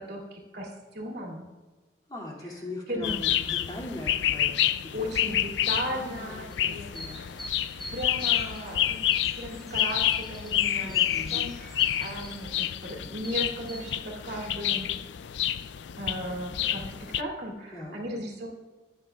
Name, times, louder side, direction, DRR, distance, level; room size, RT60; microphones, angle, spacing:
voice 1, 0.0-1.4 2.9-3.2 4.9-7.2 7.9-9.0 9.4-10.0 10.3-11.0 11.3-14.9 16.0-18.5, equal, 60° right, -1 dB, 2.7 m, -36 dB
voice 2, 2.1-5.1 5.9-7.2 10.8-11.5 17.7-17.9, left 2 dB, 25° left, -2 dB, 2.5 m, -40 dB
sound 1, 3.0-17.2, left 11 dB, 80° left, 0.4 m, -29 dB
sound 2, 6.9-13.9, equal, ahead, 2.5 m, -47 dB
22.0 x 9.0 x 2.4 m, 1.3 s
head